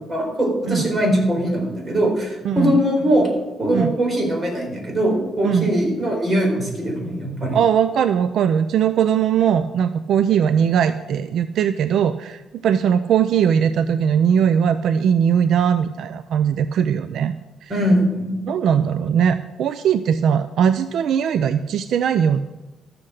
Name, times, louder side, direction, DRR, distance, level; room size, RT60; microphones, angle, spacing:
voice 1, 0.0-3.3 3.6-7.6 17.7-18.4, equal, 25° right, 0 dB, 4.2 m, -21 dB
voice 2, 2.4-2.8 3.7-3.9 5.4-5.7 7.5-17.3 17.6-17.7 18.5-22.4, right 8 dB, 70° right, 12 dB, 0.5 m, -19 dB
13.0 x 7.7 x 6.5 m, 1.1 s
cardioid pair, 120°, 0 cm